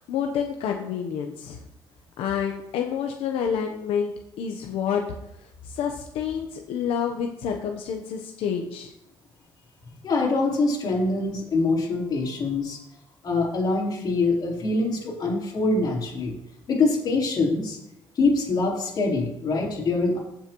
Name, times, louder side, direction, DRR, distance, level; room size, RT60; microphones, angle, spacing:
voice 1, 0.0-1.6 2.2-5.0 5.4-8.9, left 7 dB, 85° left, 3 dB, 0.9 m, -28 dB
voice 2, 10.0-12.8 13.2-16.4 16.7-17.8 18.2-20.2, left 3 dB, 45° left, -3 dB, 3.6 m, -24 dB
15.0 x 6.5 x 3.0 m, 0.81 s
cardioid pair, 140°, 10 cm